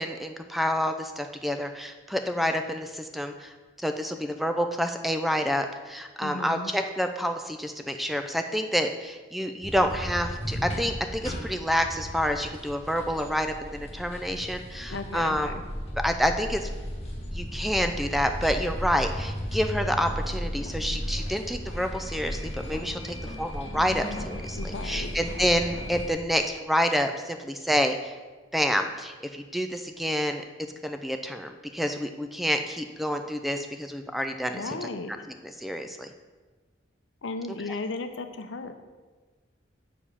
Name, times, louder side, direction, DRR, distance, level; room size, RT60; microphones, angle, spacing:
voice 1, 0.0-15.6 16.0-16.7 17.3-28.1 28.5-30.4 30.8-34.9 35.4-36.1, equal, ahead, 6 dB, 0.4 m, -28 dB
voice 2, 6.2-6.7 14.9-15.5 24.5-25.1 34.5-35.1 37.2-38.7, left 3 dB, 80° left, 8 dB, 0.6 m, -35 dB
sound 1, 9.6-26.1, equal, 35° left, 1.5 m, -35 dB
7.0 x 4.9 x 5.6 m, 1.3 s
head